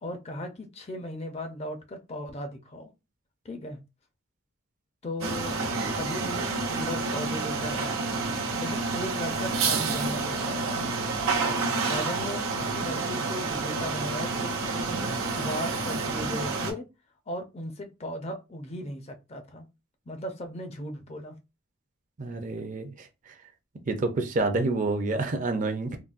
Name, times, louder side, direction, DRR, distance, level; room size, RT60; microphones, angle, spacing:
voice 1, 0.0-2.9 3.4-3.8 5.0-5.5 6.0-8.0 8.5-10.9 11.8-16.8 17.3-19.7 20.1-21.4, left 1 dB, 30° left, 0.4 m, -37 dB
sound 1, 5.2-16.7, right 4 dB, 85° right, 0.7 m, -29 dB
voice 2, 14.8-15.1 22.2-23.1 23.9-26.0, right 3 dB, 40° right, 0.4 m, -28 dB
3.7 x 2.0 x 2.4 m
head